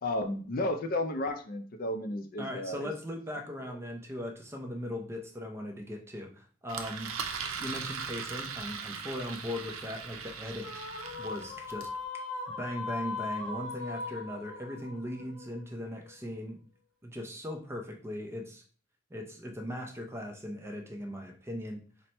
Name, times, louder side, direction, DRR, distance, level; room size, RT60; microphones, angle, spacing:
voice 1, 0.0-2.9 3.7-3.8, left 1 dB, 45° left, 6 dB, 0.4 m, -33 dB
voice 2, 2.4-7.1 7.6-10.9 11.2-11.9 12.6-16.6 17.0-18.6 19.1-21.8, left 1 dB, 10° right, 3 dB, 0.5 m, -39 dB
Engine, 6.7-12.0, right 6 dB, 80° right, 0.5 m, -39 dB
sound 1, 10.6-16.1, left 3 dB, 75° left, 0.8 m, -39 dB
4.2 x 2.1 x 4.2 m, 0.41 s
head